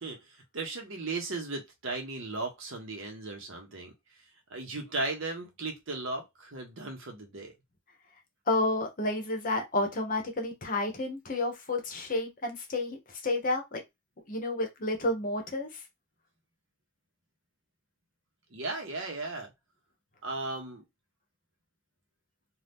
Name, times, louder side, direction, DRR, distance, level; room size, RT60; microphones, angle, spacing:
voice 1, 0.5-3.9 4.5-7.5 18.5-19.5 20.2-20.8, right 3 dB, 65° right, 1.0 m, -36 dB
voice 2, 8.5-13.8 14.3-15.8, left 2 dB, 40° left, 0.8 m, -30 dB
2.7 x 2.4 x 3.5 m
head